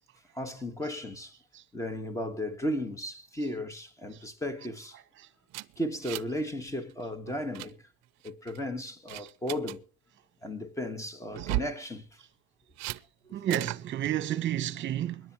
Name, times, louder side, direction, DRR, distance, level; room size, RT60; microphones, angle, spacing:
voice 1, 0.3-1.3 1.7-5.0 5.8-7.8 8.2-9.8 10.4-12.1 13.3-13.4, left 1 dB, 10° left, 1.5 m, -35 dB
sound 1, 5.5-6.4 6.7-6.9 7.3-7.7 8.2-8.6 9.1-9.8 11.3-11.8 12.8-13.0 13.5-13.8, right 20 dB, 60° right, 0.6 m, -35 dB
voice 2, 13.3-15.3, right 11 dB, 40° right, 1.3 m, -31 dB
23.0 x 10.5 x 3.0 m
cardioid pair, 130°, 30 cm